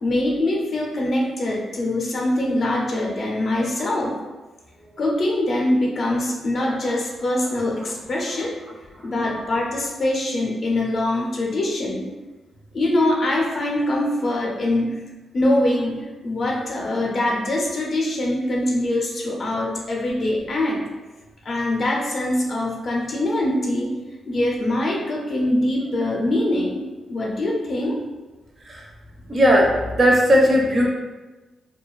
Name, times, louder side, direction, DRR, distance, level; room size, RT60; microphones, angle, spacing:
voice 1, 0.0-4.2 5.0-8.6 9.0-12.1 12.7-15.0 15.3-20.8 21.4-24.0 24.3-28.0, left 1 dB, 50° left, -1 dB, 0.5 m, -23 dB
voice 2, 29.3-30.9, equal, 35° right, -1 dB, 0.4 m, -17 dB
2.5 x 2.2 x 2.3 m, 1.2 s
cardioid pair, 115°, 0 cm